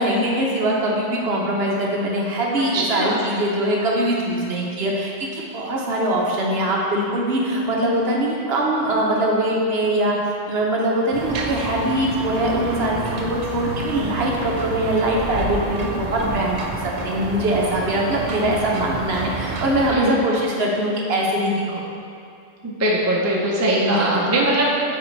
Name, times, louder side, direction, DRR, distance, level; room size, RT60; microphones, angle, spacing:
voice 1, 0.0-10.2 10.5-21.8 23.8-24.3, right 1 dB, 55° right, -2 dB, 1.0 m, -22 dB
voice 2, 2.6-3.2 19.9-20.2 22.6-24.7, right 1 dB, 20° right, -3 dB, 0.4 m, -21 dB
sound 1, 11.1-20.0, right 3 dB, 85° right, 0.3 m, -29 dB
7.0 x 4.5 x 3.2 m, 2.4 s
omnidirectional pair, 1.3 m